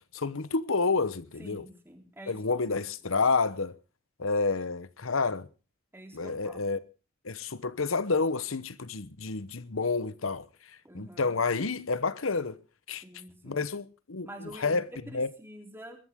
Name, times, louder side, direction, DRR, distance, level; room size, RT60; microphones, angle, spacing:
voice 1, 0.1-1.6 2.3-3.7 4.2-5.5 6.1-6.8 7.2-10.4 10.9-12.6 12.9-13.0 13.4-14.9 15.1-15.3, left 4 dB, 80° left, 1.0 m, -29 dB
voice 2, 1.4-2.8 5.9-6.7 10.8-11.3 13.0-13.7 14.2-16.0, right 1 dB, 10° right, 3.5 m, -47 dB
22.0 x 13.0 x 3.7 m
head